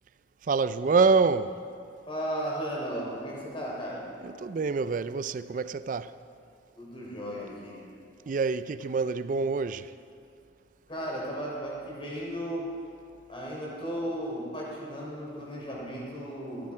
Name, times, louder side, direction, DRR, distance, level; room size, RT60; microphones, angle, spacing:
voice 1, 0.4-1.6 4.2-6.2 8.3-9.9, right 4 dB, 45° right, 0.4 m, -26 dB
voice 2, 2.1-4.1 6.8-7.8 10.9-12.7 13.3-16.7, equal, 30° left, 3.5 m, -35 dB
15.5 x 11.5 x 4.8 m
head